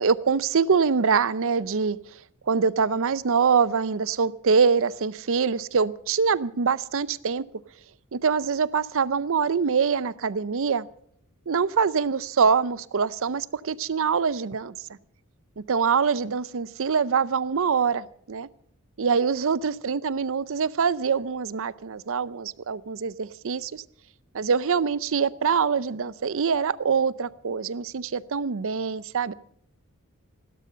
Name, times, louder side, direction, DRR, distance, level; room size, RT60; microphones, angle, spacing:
voice 1, 0.0-2.0 2.5-7.4 8.1-10.9 11.5-14.7 15.6-18.5 19.0-23.8 24.3-29.3, right 5 dB, 60° right, 0.6 m, -24 dB
16.5 x 12.5 x 6.7 m
head